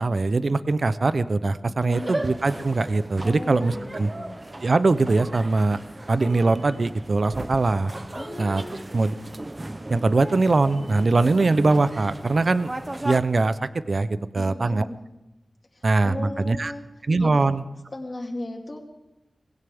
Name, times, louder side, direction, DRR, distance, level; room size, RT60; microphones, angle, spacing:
voice 1, 0.0-4.1 4.6-5.8 6.1-7.9 8.4-8.6 8.9-9.1 9.9-12.7 13.0-14.8 15.8-16.7 17.1-17.6, right 3 dB, 60° right, 14 dB, 0.7 m, -22 dB
voice 2, 1.9-2.2 3.2-4.4 8.2-8.9 14.3-15.0 15.7-16.8 17.2-17.5 17.9-18.8, left 2 dB, 40° left, 0 dB, 2.4 m, -36 dB
sound 1, 1.9-13.2, right 1 dB, 30° right, 0.8 m, -36 dB
20.0 x 17.0 x 3.6 m, 0.97 s
wide cardioid pair, 60°, 0 cm